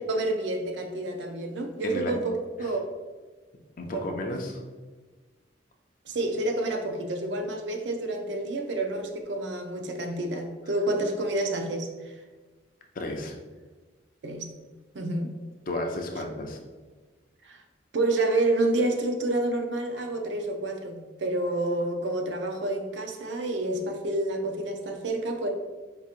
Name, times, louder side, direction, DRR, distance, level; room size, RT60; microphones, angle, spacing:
voice 1, 0.0-2.8 3.8-4.1 6.1-12.2 14.2-14.5 14.9-15.3 17.4-17.6 17.9-25.5, right 2 dB, 80° right, 4 dB, 0.5 m, -29 dB
voice 2, 3.8-4.6 12.9-13.4 15.7-16.6, left 2 dB, 50° left, 2 dB, 0.5 m, -33 dB
4.5 x 2.9 x 2.4 m, 1.4 s
head